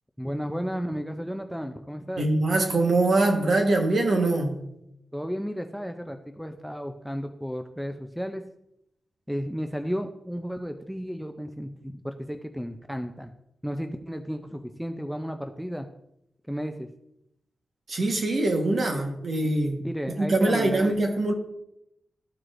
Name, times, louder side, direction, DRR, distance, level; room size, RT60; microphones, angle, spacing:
voice 1, 0.2-2.3 5.1-8.4 9.3-13.3 13.6-15.9 16.5-16.9 19.8-21.0, equal, ahead, 0.4 m, -33 dB
voice 2, 2.2-4.6 17.9-21.3, right 2 dB, 50° right, 1.2 m, -23 dB
13.5 x 4.7 x 2.5 m
wide cardioid pair, 145°, 0 cm